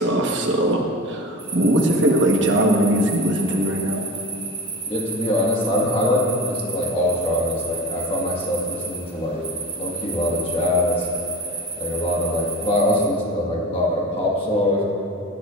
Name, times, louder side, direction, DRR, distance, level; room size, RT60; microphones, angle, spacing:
voice 1, 0.0-4.1, right 1 dB, 60° right, 1 dB, 1.2 m, -20 dB
sound 1, 1.4-13.1, right 5 dB, 30° right, 1.5 m, -32 dB
voice 2, 4.9-9.4 9.8-11.1 11.8-14.9, left 1 dB, 30° left, -3 dB, 1.6 m, -23 dB
17.5 x 8.0 x 2.5 m, 3.0 s
head